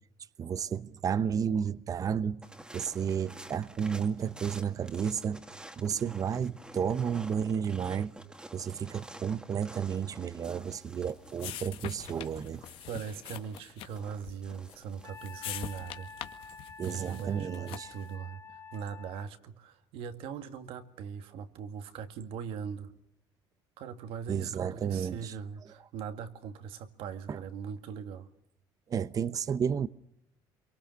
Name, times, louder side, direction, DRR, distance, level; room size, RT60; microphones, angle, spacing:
voice 1, 0.4-2.4 2.7-5.4 5.8-8.1 8.5-12.6 16.8-17.9 24.3-25.3 27.3-27.4 28.9-29.9, right 7 dB, 40° right, 0.9 m, -32 dB
sound 1, 2.4-15.1, right 1 dB, 10° right, 2.1 m, -50 dB
sound 2, 10.6-18.1, left 12 dB, 75° left, 1.9 m, -45 dB
voice 2, 12.9-16.1 16.8-18.4 18.7-22.9 23.8-28.3, right 7 dB, 75° right, 2.2 m, -40 dB
Wind instrument woodwind instrument, 15.0-19.3, left 5 dB, 25° left, 1.3 m, -49 dB
26.5 x 23.5 x 6.5 m
cardioid pair, 105°, 9 cm